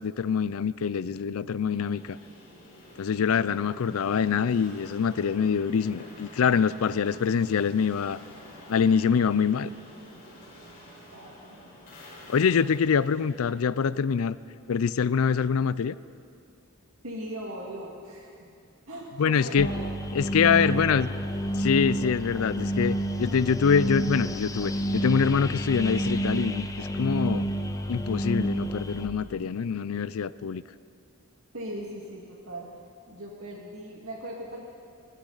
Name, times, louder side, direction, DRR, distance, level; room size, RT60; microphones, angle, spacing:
voice 1, 0.0-2.2 3.0-8.2 8.7-9.7 12.3-14.4 14.7-16.0 19.2-19.7 20.1-21.1 21.6-27.5 27.9-30.6, left 6 dB, 85° left, 17 dB, 0.4 m, -25 dB
sound 1, 1.7-14.6, left 1 dB, 45° left, 4.2 m, -49 dB
voice 2, 11.1-11.8 17.0-18.4 18.9-20.0 20.4-21.8 31.5-32.7 33.1-34.6, right 1 dB, 80° right, -2 dB, 2.1 m, -39 dB
sound 2, 19.6-29.1, right 1 dB, 15° left, 0.6 m, -29 dB
27.0 x 12.0 x 4.0 m, 2.3 s
head